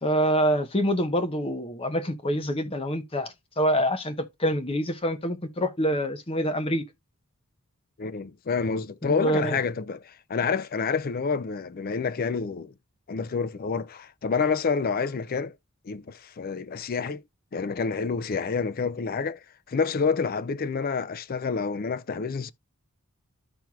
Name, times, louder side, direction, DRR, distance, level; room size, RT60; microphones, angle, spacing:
voice 1, 0.0-6.8 9.0-9.6, equal, 25° left, 0.9 m, -26 dB
voice 2, 8.0-12.7 13.1-15.5 15.9-17.2 17.5-19.4 19.7-22.5, left 5 dB, 40° left, 0.4 m, -28 dB
13.5 x 4.5 x 2.3 m
head